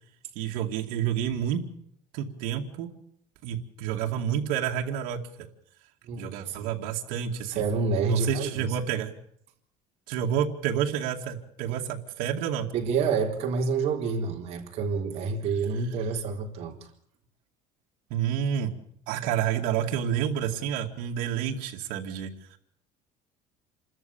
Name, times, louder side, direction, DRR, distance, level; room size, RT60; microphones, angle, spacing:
voice 1, 0.4-1.6 2.1-2.9 3.4-5.5 6.2-7.6 8.1-9.1 10.1-12.7 18.1-18.7 19.1-22.6, right 9 dB, 80° right, 1 dB, 2.4 m, -29 dB
voice 2, 6.0-6.7 7.5-8.8 11.7-11.8 12.7-16.8, right 4 dB, 50° right, 1 dB, 3.9 m, -28 dB
27.5 x 14.0 x 8.8 m, 0.70 s
cardioid pair, 165°, 14 cm